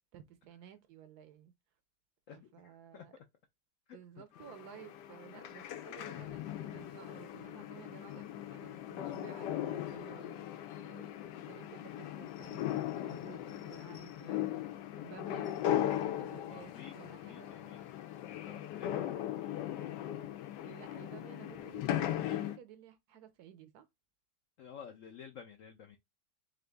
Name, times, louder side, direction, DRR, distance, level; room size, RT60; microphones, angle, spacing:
voice 1, 0.1-1.5 2.3-3.1 3.9-17.5 20.6-23.9, right 9 dB, 70° right, 1.1 m, -54 dB
voice 2, 2.3-3.3 3.9-4.0 16.5-19.1 24.6-26.0, left 7 dB, 65° left, 0.8 m, -52 dB
sound 1, 4.4-22.6, left 12 dB, 80° left, 1.2 m, -38 dB
3.8 x 2.6 x 3.4 m
omnidirectional pair, 1.8 m